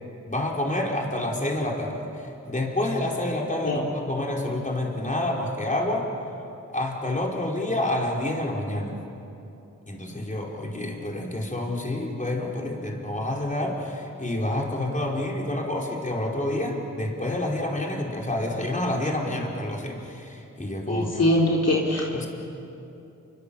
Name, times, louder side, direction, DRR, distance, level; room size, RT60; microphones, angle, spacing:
voice 1, 0.3-6.1 6.7-9.0 9.9-21.2 22.1-22.3, left 1 dB, 25° left, -1 dB, 4.7 m, -28 dB
voice 2, 20.9-22.3, left 1 dB, 55° left, -3 dB, 3.5 m, -22 dB
29.5 x 24.5 x 7.2 m, 2.8 s
wide cardioid pair, 70°, 30 cm